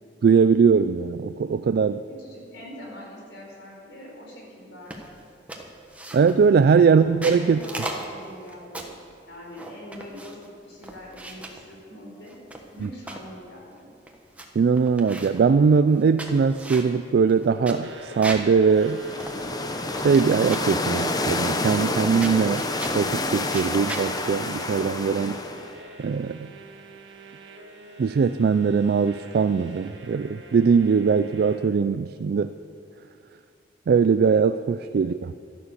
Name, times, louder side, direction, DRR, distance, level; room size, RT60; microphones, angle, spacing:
voice 1, 0.2-2.0 6.1-7.6 12.8-12.9 14.6-19.0 19.9-22.7 22.9-25.4 26.0-26.5 28.0-32.6 33.9-35.3, right 5 dB, 55° right, 11 dB, 0.3 m, -21 dB
voice 2, 2.1-4.9 6.8-7.0 7.3-8.9 9.3-10.4 10.6-12.3 12.7-13.9, equal, 85° left, -2 dB, 4.5 m, -43 dB
sound 1, 4.9-5.2 5.5-6.5 7.0-9.0 9.5-10.5 10.8-11.6 12.3-13.3 13.8-13.9 14.1-14.5 14.7-15.4 15.9-18.5 18.9-19.0 19.2-20.2 20.5-20.8 21.6-22.0 22.2-23.0 23.4-24.1, right 1 dB, 10° right, 1.2 m, -37 dB
sound 2, 17.8-31.6, equal, 80° right, 1.7 m, -44 dB
sound 3, 18.7-25.8, left 2 dB, 20° left, 0.8 m, -28 dB
12.5 x 11.0 x 6.8 m, 2.3 s
head